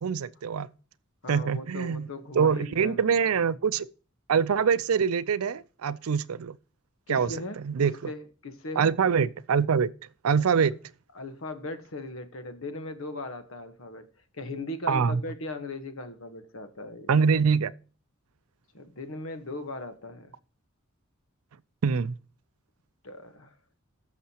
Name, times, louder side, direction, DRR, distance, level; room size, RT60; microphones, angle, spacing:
voice 1, 0.0-0.7 1.3-2.1 2.3-3.9 4.3-6.6 7.1-7.3 7.6-7.9 8.8-9.9 10.2-10.7 14.9-15.2 17.1-17.7 21.8-22.1, right 6 dB, 85° right, 0.5 m, -24 dB
voice 2, 1.2-3.1 7.1-8.9 10.6-10.7 11.1-14.1 14.3-17.1 18.7-20.3 23.0-23.5, left 2 dB, 65° left, 1.2 m, -38 dB
15.0 x 6.6 x 2.9 m
head